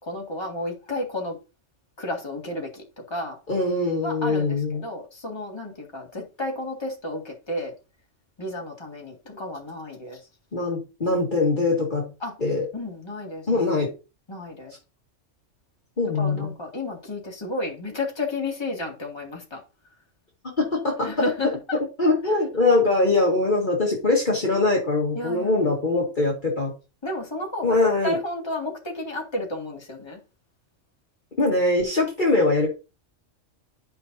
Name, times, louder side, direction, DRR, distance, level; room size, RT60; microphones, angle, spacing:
voice 1, 0.0-1.4 2.0-3.4 4.0-7.7 8.4-10.3 12.2-12.4 12.7-13.6 14.3-14.7 16.1-19.6 21.0-21.8 25.2-25.6 27.0-27.8 28.0-30.2, left 2 dB, 20° left, 2.0 m, -32 dB
voice 2, 3.5-4.8 10.5-12.1 12.4-12.7 13.5-13.9 16.0-16.5 20.6-21.1 22.0-26.7 27.6-28.2 31.4-32.7, left 2 dB, 40° left, 1.9 m, -22 dB
11.0 x 5.4 x 2.6 m
omnidirectional pair, 1.3 m